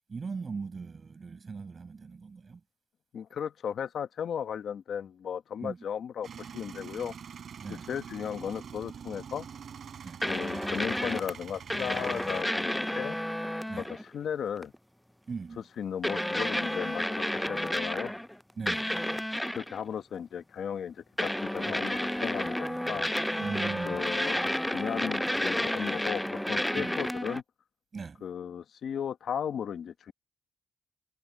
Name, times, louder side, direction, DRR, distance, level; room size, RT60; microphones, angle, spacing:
voice 1, 0.1-2.6 5.6-5.8 7.6-7.9 10.0-10.2 13.7-13.9 15.3-15.6 18.6-19.0 21.7-21.8 23.4-24.1 26.8-26.9 27.9-28.2, right 5 dB, 40° right, 5.4 m, -39 dB
voice 2, 3.1-7.1 7.7-9.5 10.3-13.2 13.8-14.7 15.8-18.1 19.5-23.1 23.8-27.4 28.2-30.1, left 8 dB, 75° left, 1.2 m, -36 dB
Male speech man speaking / Vehicle / Engine starting, 6.2-12.4, right 7 dB, 65° right, 4.0 m, -45 dB
sound 1, 10.2-11.3 11.7-14.0 14.6-14.7 16.0-18.3 18.7-19.8 21.2-27.4, left 1 dB, 5° left, 0.3 m, -31 dB
cardioid pair, 105°, 0 cm